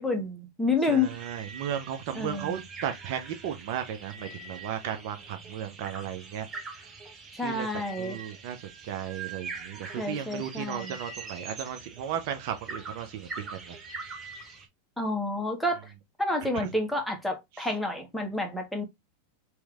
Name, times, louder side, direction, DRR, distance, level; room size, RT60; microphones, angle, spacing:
voice 1, 0.0-1.2 2.1-2.6 7.4-8.2 10.0-10.9 15.0-15.9 16.2-18.8, left 2 dB, ahead, 1.2 m, -29 dB
voice 2, 0.9-6.5 7.4-7.7 8.0-8.6 8.9-13.8 16.5-16.7, right 9 dB, 60° right, 0.8 m, -35 dB
sound 1, 1.0-14.7, right 4 dB, 25° right, 1.3 m, -43 dB
3.2 x 3.1 x 3.4 m
hypercardioid pair, 105°, 0 cm